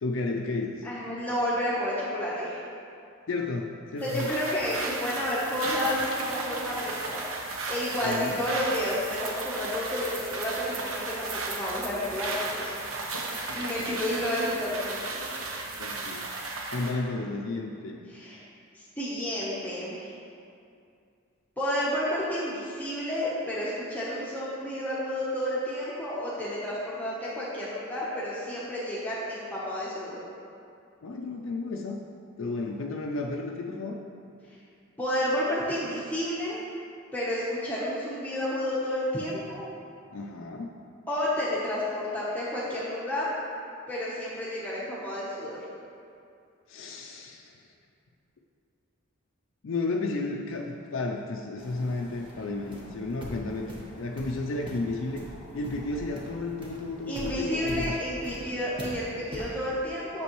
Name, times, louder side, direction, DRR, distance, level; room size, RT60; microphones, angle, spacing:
voice 1, 0.0-0.9 3.3-4.3 8.0-8.4 13.5-14.0 15.8-16.3 16.7-18.0 31.0-32.0 32.4-34.0 40.1-40.7 46.7-47.6 49.6-55.3 55.5-58.0, left 3 dB, 65° left, 0 dB, 0.4 m, -33 dB
voice 2, 0.8-2.6 4.0-7.2 7.7-12.7 13.5-15.2 18.1-18.4 18.7-20.1 21.6-30.2 35.0-36.6 37.1-39.7 41.1-43.3 43.9-45.6 57.1-60.2, left 1 dB, 10° left, -8 dB, 0.9 m, -31 dB
sound 1, 4.0-17.0, right 3 dB, 90° right, 0.9 m, -35 dB
sound 2, 51.6-59.5, equal, 25° right, 1.1 m, -42 dB
8.3 x 6.8 x 3.1 m, 2.5 s
head